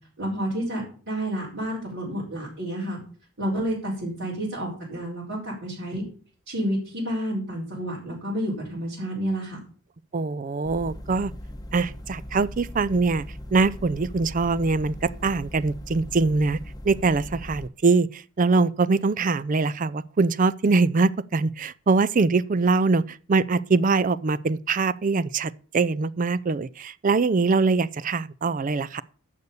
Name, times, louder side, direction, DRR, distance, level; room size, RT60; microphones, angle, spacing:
voice 1, 0.2-3.0 3.4-6.0 6.5-9.6, equal, 60° right, 4.3 m, -30 dB
voice 2, 10.1-11.3 11.7-13.3 13.5-16.6 16.8-29.0, right 4 dB, 35° right, 0.4 m, -23 dB
sound 1, 10.6-17.7, left 1 dB, 15° left, 0.9 m, -39 dB
10.5 x 6.8 x 7.0 m
head